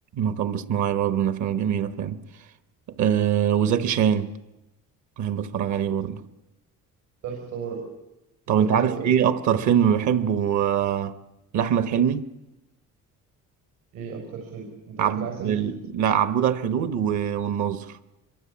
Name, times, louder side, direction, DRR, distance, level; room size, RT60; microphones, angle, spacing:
voice 1, 0.1-2.2 3.0-4.3 5.2-6.2 8.5-11.1 11.5-12.3 15.0-17.9, right 9 dB, 60° right, 1.3 m, -23 dB
voice 2, 7.2-7.9 8.5-9.3 13.9-15.7, right 6 dB, 85° right, 6.4 m, -35 dB
25.5 x 23.5 x 8.6 m
cardioid pair, 160°, 32 cm